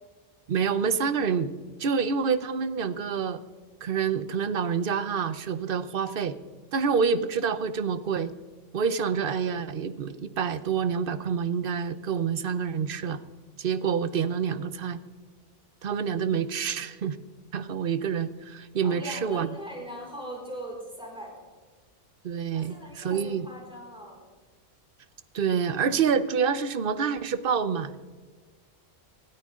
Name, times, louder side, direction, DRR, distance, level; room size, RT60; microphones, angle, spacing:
voice 1, 0.5-3.4 3.8-6.4 6.7-8.3 8.7-13.2 13.6-15.0 15.8-17.2 17.5-19.5 22.2-23.5 25.3-27.9, right 6 dB, 50° right, 14 dB, 0.9 m, -27 dB
voice 2, 18.8-21.5 22.5-24.2, equal, 5° right, -3 dB, 5.6 m, -41 dB
20.5 x 13.0 x 3.7 m, 1.4 s
omnidirectional pair, 1.3 m